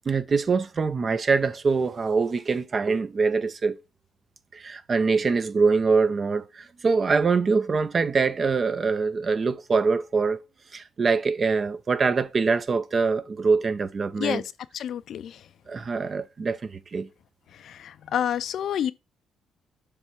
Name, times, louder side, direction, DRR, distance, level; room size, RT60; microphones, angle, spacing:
voice 1, 0.1-3.8 4.5-10.4 10.7-14.4 15.7-17.1, right 4 dB, 40° right, 0.6 m, -24 dB
voice 2, 14.7-15.4 17.6-18.9, left 9 dB, 70° left, 0.4 m, -28 dB
6.9 x 3.4 x 4.7 m
cardioid pair, 90°, 0 cm